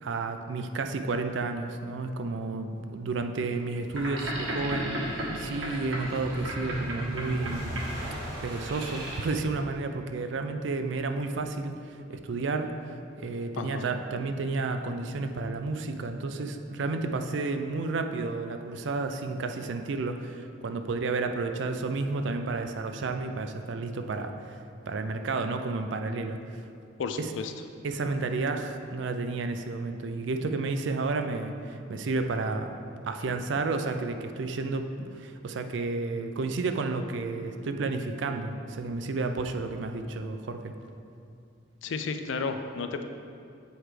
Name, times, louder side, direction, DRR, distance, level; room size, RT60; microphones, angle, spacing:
voice 1, 0.0-7.8 8.4-12.7 13.2-24.6 24.9-26.4 27.2-27.3 27.8-32.7 33.1-40.7, right 3 dB, 65° right, 7 dB, 0.4 m, -31 dB
Boat Water vehicle, 3.8-9.3, right 1 dB, 90° right, 1.3 m, -34 dB
voice 2, 13.6-13.9 27.0-27.5 41.8-43.0, left 4 dB, 70° left, 7 dB, 0.4 m, -32 dB
8.0 x 4.5 x 3.2 m, 2.5 s
head